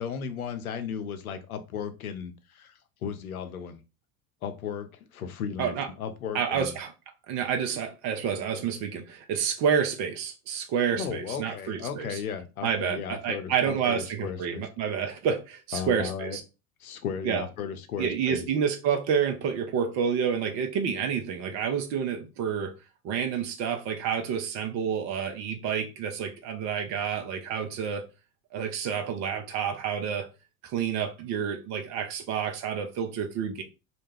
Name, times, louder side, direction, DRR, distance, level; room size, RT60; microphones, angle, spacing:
voice 1, 0.0-3.8 4.4-6.7 10.9-14.7 15.7-16.4 16.8-18.4, left 7 dB, 75° left, 0.6 m, -35 dB
voice 2, 6.3-6.9 7.3-12.2 12.6-16.4 17.2-17.4 18.0-22.7 23.0-28.0 28.5-30.3 30.6-33.6, right 7 dB, 40° right, 0.7 m, -29 dB
2.4 x 2.2 x 3.2 m
figure-of-eight pair, 75°, 43 cm